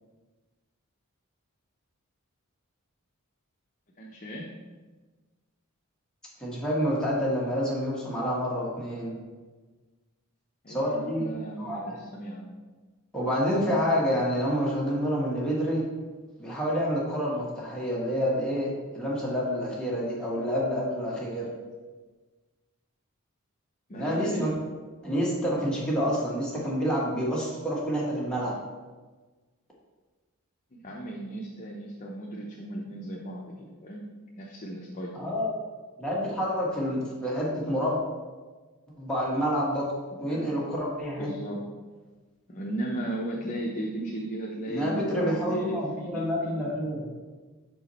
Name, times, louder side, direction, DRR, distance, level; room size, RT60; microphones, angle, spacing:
voice 1, 4.0-4.5 10.6-12.5 23.9-24.5 30.7-34.0 34.3-35.2 40.1-40.6 41.2-41.6 42.5-46.7, right 1 dB, 35° left, -3 dB, 0.7 m, -36 dB
voice 2, 6.4-9.1 10.7-11.3 11.6-12.0 13.1-15.8 16.4-21.5 23.9-24.5 25.0-28.5 35.2-35.5 36.0-38.0 39.0-39.9 40.2-41.3 44.7-47.1, equal, 5° left, -6 dB, 1.4 m, -28 dB
5.8 x 4.6 x 4.2 m, 1.3 s
head